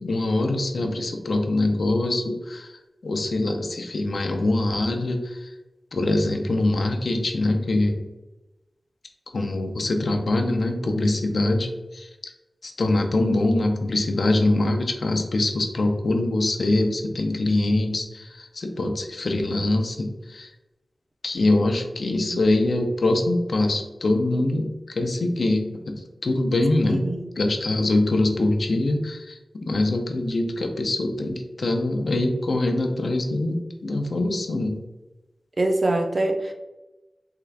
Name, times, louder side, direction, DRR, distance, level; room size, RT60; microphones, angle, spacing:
voice 1, 0.0-2.7 3.0-5.5 5.9-8.0 9.3-12.1 12.6-20.5 21.2-27.0 27.4-34.8, left 2 dB, 75° left, 4 dB, 0.4 m, -23 dB
voice 2, 26.9-27.3 35.6-36.5, right 2 dB, 45° right, 3 dB, 0.5 m, -24 dB
3.6 x 2.4 x 3.3 m, 1.1 s
wide cardioid pair, 85°, 0 cm